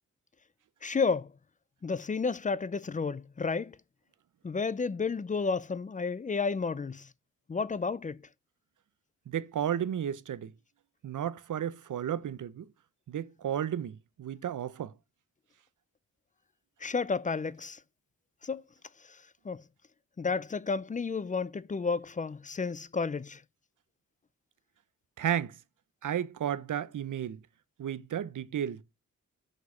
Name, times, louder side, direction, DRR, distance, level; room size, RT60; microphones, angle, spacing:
voice 1, 0.8-1.3 1.8-3.8 4.4-7.1 7.5-8.2 16.8-17.8 18.4-18.6 19.4-19.6 20.2-23.4, left 4 dB, 25° left, 0.4 m, -31 dB
voice 2, 9.3-10.5 11.0-12.7 13.1-14.9 25.2-25.6 26.0-27.4 27.8-28.8, right 9 dB, 75° right, 0.7 m, -33 dB
6.2 x 5.2 x 6.8 m
wide cardioid pair, 130°, 31 cm